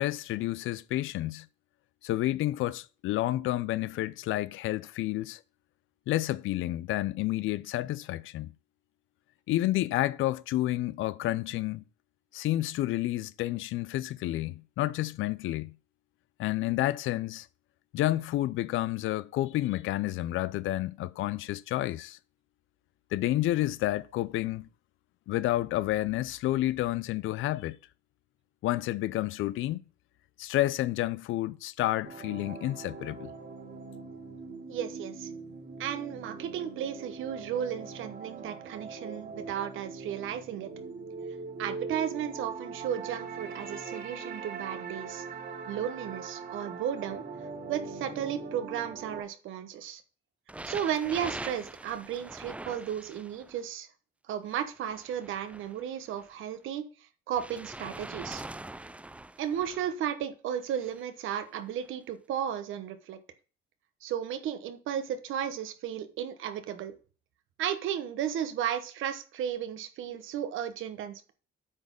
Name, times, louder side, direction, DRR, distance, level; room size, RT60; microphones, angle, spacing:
voice 1, 0.0-1.5 2.0-5.4 6.1-8.5 9.5-11.8 12.3-15.7 16.4-17.5 17.9-22.2 23.1-24.7 25.3-27.8 28.6-29.8 30.4-33.3, left 15 dB, 80° left, 0.5 m, -30 dB
sound 1, 32.0-49.2, right 4 dB, 55° right, 2.6 m, -41 dB
voice 2, 34.7-35.3 35.8-40.7 41.6-45.2 45.7-47.2 47.7-50.0 50.7-53.9 54.3-56.8 57.3-58.4 59.4-63.2 64.0-66.9 67.6-71.3, right 9 dB, 85° right, 1.1 m, -34 dB
sound 2, 50.5-53.6 54.5-56.3 57.4-59.9 60.7-61.0 61.8-61.9, right 2 dB, 5° right, 0.3 m, -43 dB
8.8 x 4.2 x 5.3 m
cardioid pair, 90°, 20 cm